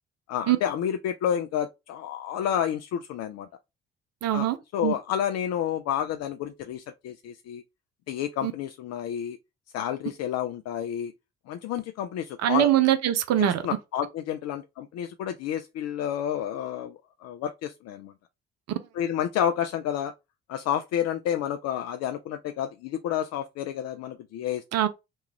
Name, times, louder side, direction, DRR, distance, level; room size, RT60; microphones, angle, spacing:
voice 1, 0.3-3.5 4.3-7.6 8.1-9.4 9.7-11.1 11.5-12.7 13.4-18.1 18.9-20.1 20.5-24.6, left 10 dB, 60° left, 0.5 m, -30 dB
voice 2, 4.2-4.6 4.8-4.9 8.4-8.5 12.4-13.6 24.7-24.9, right 13 dB, 60° right, 0.7 m, -22 dB
3.1 x 2.4 x 2.9 m
hypercardioid pair, 50°, 29 cm